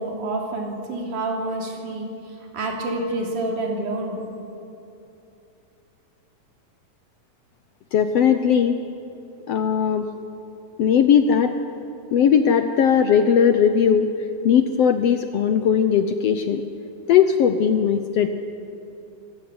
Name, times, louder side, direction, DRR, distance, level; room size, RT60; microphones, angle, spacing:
voice 1, 0.0-2.1 2.5-4.2, right 2 dB, 65° right, 0 dB, 4.6 m, -28 dB
voice 2, 7.9-8.8 9.5-10.1 10.8-11.6 12.1-14.1 14.4-16.6 17.1-18.3, left 8 dB, 75° left, 8 dB, 1.4 m, -18 dB
26.5 x 15.0 x 9.6 m, 2.8 s
omnidirectional pair, 3.9 m